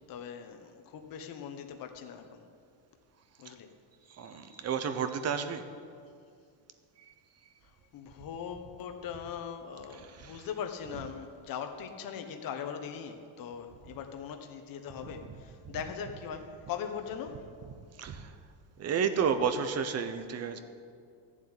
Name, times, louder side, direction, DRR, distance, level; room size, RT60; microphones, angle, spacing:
voice 1, 0.1-2.4 3.4-3.7 4.2-4.7 7.9-17.4, left 7 dB, 45° left, 5 dB, 1.2 m, -40 dB
voice 2, 4.1-5.6 7.1-7.2 9.9-10.6 10.9-11.1 15.7-15.8 18.0-18.3 18.8-20.6, right 6 dB, 30° right, 9 dB, 0.9 m, -32 dB
14.0 x 7.4 x 9.8 m, 2.3 s
cardioid pair, 150°, 48 cm